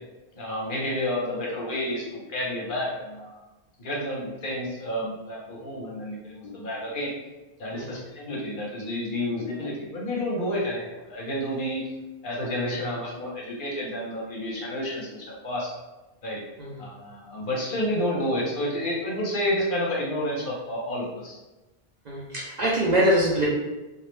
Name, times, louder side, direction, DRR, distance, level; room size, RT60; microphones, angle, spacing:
voice 1, 0.3-3.4 3.8-7.1 7.6-11.8 12.2-15.7 16.2-16.4 16.8-21.4, left 1 dB, 60° left, -3 dB, 0.8 m, -30 dB
voice 2, 22.0-23.5, equal, 55° right, -5 dB, 0.5 m, -24 dB
2.2 x 2.0 x 3.1 m, 1.1 s
omnidirectional pair, 1.1 m